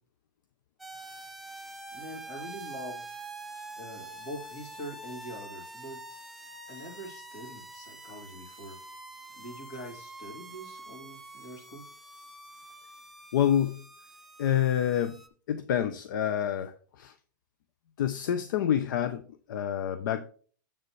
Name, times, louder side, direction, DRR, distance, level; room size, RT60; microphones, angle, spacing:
sound 1, 0.8-15.3, right 2 dB, ahead, 0.6 m, -46 dB
voice 1, 1.9-3.1 3.8-6.0 6.7-8.8 9.3-11.8, equal, 50° left, -1 dB, 3.2 m, -44 dB
voice 2, 13.3-13.8 14.4-15.2 15.5-16.7 17.0-17.1 18.0-19.2 19.5-20.3, left 10 dB, 70° left, 11 dB, 0.6 m, -27 dB
7.6 x 6.7 x 3.2 m, 0.42 s
supercardioid pair, 145°, 11 cm